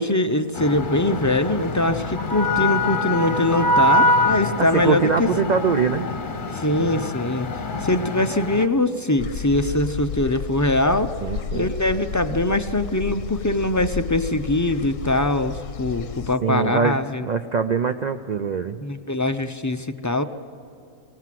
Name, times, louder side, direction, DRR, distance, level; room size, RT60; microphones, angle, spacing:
voice 1, 0.0-5.3 6.5-7.5 7.8-11.1 11.5-17.2 18.8-20.2, left 1 dB, 25° left, 8 dB, 0.4 m, -22 dB
sound 1, 0.5-8.6, left 2 dB, 40° left, 1.1 m, -24 dB
voice 2, 4.6-6.1 11.2-11.7 16.4-18.8, right 6 dB, 55° right, 8 dB, 0.5 m, -23 dB
sound 2, 9.2-16.4, left 7 dB, 65° left, 1.1 m, -32 dB
sound 3, 11.6-12.5, right 2 dB, 75° right, 5.2 m, -50 dB
24.0 x 19.0 x 7.6 m, 2.6 s
omnidirectional pair, 1.5 m